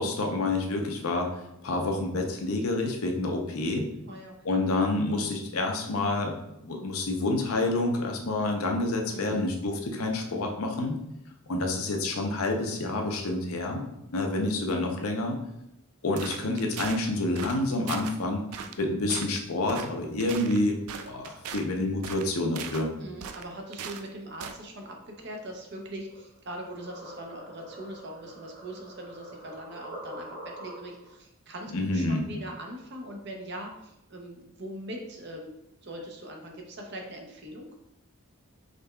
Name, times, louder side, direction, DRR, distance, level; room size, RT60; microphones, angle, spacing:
voice 1, 0.0-3.9 4.4-6.3 6.6-11.0 11.5-13.9 14.1-15.4 16.0-18.4 18.8-22.9 31.7-32.2, left 2 dB, 80° left, 2 dB, 0.7 m, -28 dB
voice 2, 4.0-4.4 9.1-9.5 23.0-35.5 35.8-37.7, right 1 dB, 50° right, 2 dB, 0.7 m, -41 dB
sound 1, 16.2-17.0 17.4-17.6 17.9-18.2 18.5-18.8 19.1-19.4 19.7-19.9 20.2-21.7 22.0-22.9 23.2-24.1 24.4-24.6, right 7 dB, 85° right, 0.4 m, -39 dB
sound 2, 26.1-31.2, right 1 dB, 65° right, 1.3 m, -45 dB
5.1 x 3.2 x 2.3 m, 0.85 s
head